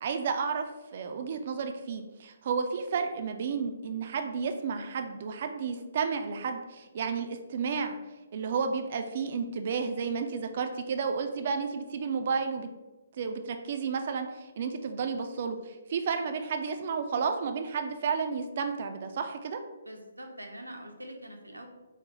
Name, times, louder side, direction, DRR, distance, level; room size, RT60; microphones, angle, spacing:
voice 1, 0.0-0.6 0.9-8.0 8.3-12.7 13.2-19.6, right 5 dB, 45° right, 6 dB, 0.3 m, -32 dB
voice 2, 19.8-21.7, right 1 dB, 85° right, 3 dB, 0.6 m, -44 dB
4.7 x 2.1 x 3.0 m, 1.1 s
figure-of-eight pair, 135°, 0 cm